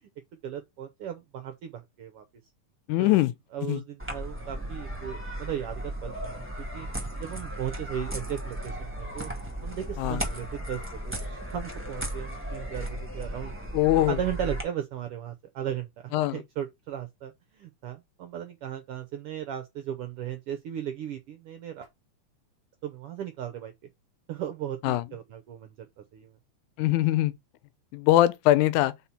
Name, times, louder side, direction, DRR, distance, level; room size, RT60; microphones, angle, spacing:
voice 1, 0.4-2.2 3.0-3.2 3.5-6.9 7.2-9.3 9.6-13.5 14.0-21.9 22.8-23.7 24.3-25.7 26.1-26.3, right 10 dB, 80° right, 1.3 m, -36 dB
voice 2, 2.9-3.3 3.7-3.8 10.0-10.2 13.7-14.2 16.1-16.4 24.8-25.0 26.8-27.3 27.9-28.9, left 15 dB, 90° left, 2.0 m, -22 dB
sound 1, 4.0-14.6, right 1 dB, 10° right, 0.9 m, -35 dB
4.3 x 4.2 x 5.6 m
omnidirectional pair, 3.4 m